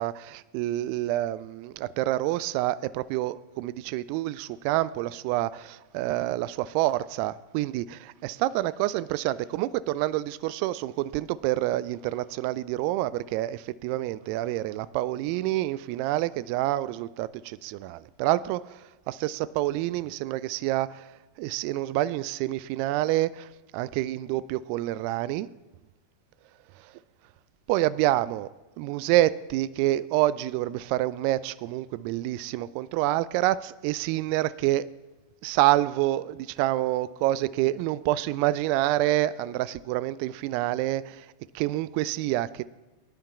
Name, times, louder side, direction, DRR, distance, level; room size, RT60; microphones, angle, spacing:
voice 1, 0.0-21.1 21.4-25.5 27.7-28.5 28.8-34.9 35.4-41.3 41.5-42.6, right 15 dB, 45° right, 18 dB, 0.3 m, -27 dB
19.5 x 10.0 x 2.4 m, 1.1 s
figure-of-eight pair, 90°, 0 cm